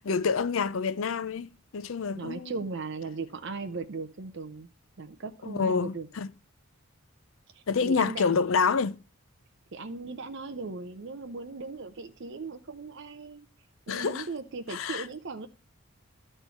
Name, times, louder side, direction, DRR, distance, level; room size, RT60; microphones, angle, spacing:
voice 1, 0.0-2.6 5.4-6.3 7.7-9.0 13.9-14.2 14.7-15.1, left 5 dB, 65° left, 0.5 m, -27 dB
voice 2, 2.2-4.7 5.0-6.1 7.5-8.2 9.7-13.5 13.9-15.5, right 3 dB, 55° right, 0.6 m, -38 dB
12.5 x 4.4 x 4.4 m
head